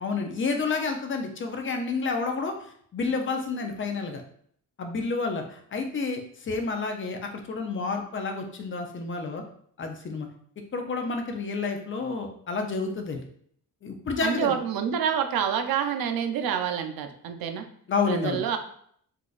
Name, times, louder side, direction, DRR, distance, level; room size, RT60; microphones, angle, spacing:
voice 1, 0.0-4.2 4.8-7.2 7.5-9.4 9.8-10.3 10.7-13.2 13.8-14.6 17.9-18.4, left 4 dB, 35° left, 4 dB, 0.4 m, -30 dB
voice 2, 14.2-17.6 18.1-18.6, right 8 dB, 75° right, 6 dB, 0.5 m, -27 dB
3.9 x 2.3 x 2.4 m, 0.63 s
cardioid pair, 115°, 36 cm